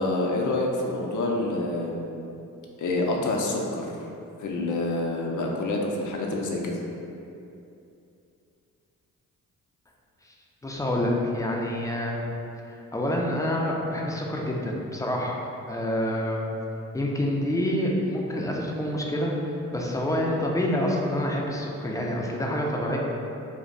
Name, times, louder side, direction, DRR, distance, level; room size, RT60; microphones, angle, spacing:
voice 1, 0.0-2.1 2.8-3.9 4.4-6.7, left 2 dB, 55° left, 0 dB, 0.6 m, -27 dB
voice 2, 10.6-12.2 12.9-15.4 15.7-16.5 16.9-23.0, left 1 dB, 10° left, -2 dB, 0.5 m, -27 dB
2.5 x 2.1 x 3.8 m, 2.8 s
supercardioid pair, 45°, 36 cm